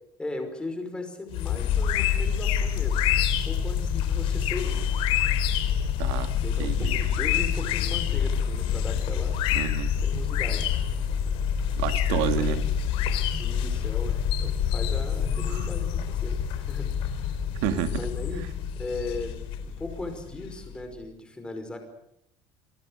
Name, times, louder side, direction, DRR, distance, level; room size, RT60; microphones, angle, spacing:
voice 1, 0.2-3.1 3.5-4.8 6.4-9.4 10.0-10.7 12.1-12.6 13.4-17.3 17.9-18.4 18.8-19.4 19.6-21.8, left 2 dB, 10° left, 5.3 m, -37 dB
sound 1, 1.3-20.7, left 8 dB, 60° left, 4.2 m, -27 dB
voice 2, 6.0-6.3 6.6-7.0 9.5-9.9 11.8-12.6 15.5-15.7 17.6-18.0, right 11 dB, 85° right, 2.4 m, -29 dB
29.0 x 23.0 x 6.5 m
cardioid pair, 170°, 10 cm